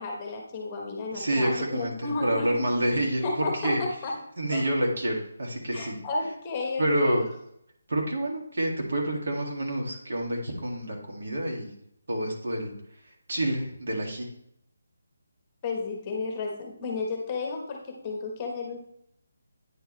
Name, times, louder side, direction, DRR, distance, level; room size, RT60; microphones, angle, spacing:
voice 1, 0.0-2.7 3.2-4.1 4.5-4.6 5.7-7.2 15.6-18.8, left 3 dB, 20° left, 1 dB, 1.0 m, -32 dB
voice 2, 1.1-3.8 4.4-6.0 6.8-7.3 7.9-11.8 12.1-12.7 13.0-14.3, right 1 dB, 65° right, 0 dB, 2.0 m, -28 dB
9.2 x 4.6 x 3.2 m, 0.74 s
hypercardioid pair, 170°, 0 cm